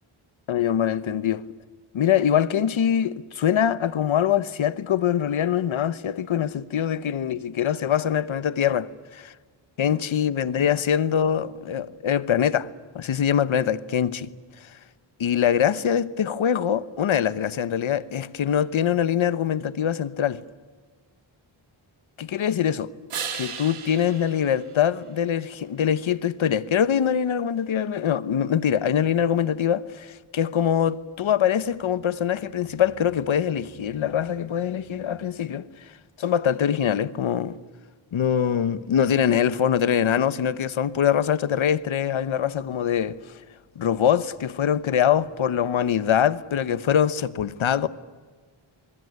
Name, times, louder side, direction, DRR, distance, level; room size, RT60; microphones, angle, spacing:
voice 1, 0.5-1.4 1.9-9.3 9.8-12.7 12.9-14.3 14.6-14.7 15.2-20.4 22.2-22.9 23.3-35.9 36.2-37.6 38.1-43.2 43.7-47.9, left 9 dB, 70° left, 1.1 m, -23 dB
sound 1, 23.1-25.7 31.4-35.4, right 6 dB, 90° right, 3.1 m, -40 dB
25.0 x 22.5 x 9.5 m
wide cardioid pair, 170°, 49 cm